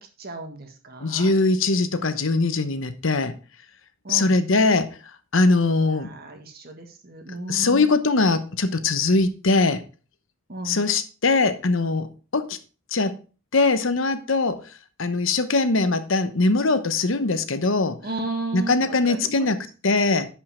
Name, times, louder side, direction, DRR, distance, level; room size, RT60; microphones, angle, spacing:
voice 1, 0.2-1.3 4.0-4.3 5.9-7.9 10.5-10.9 18.0-19.5, right 2 dB, 50° right, 5 dB, 1.7 m, -34 dB
voice 2, 1.0-3.3 4.1-4.9 5.3-6.1 7.5-9.8 10.6-12.1 12.3-12.6 12.9-13.1 13.5-14.6 15.0-18.0 18.5-19.6 19.8-20.3, left 3 dB, 70° left, 11 dB, 1.0 m, -21 dB
11.0 x 5.6 x 4.3 m, 0.35 s
head